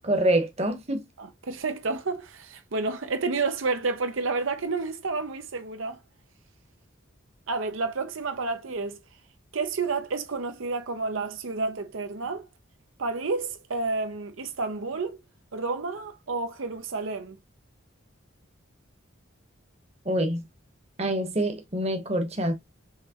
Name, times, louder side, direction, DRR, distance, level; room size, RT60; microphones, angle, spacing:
voice 1, 0.0-1.1 20.0-20.4 21.0-22.5, right 1 dB, 30° right, 1.0 m, -26 dB
voice 2, 1.2-6.0 7.5-9.0 9.5-12.5 13.0-15.2 15.5-17.4, right 3 dB, 75° right, 0.7 m, -30 dB
5.7 x 3.2 x 2.8 m
head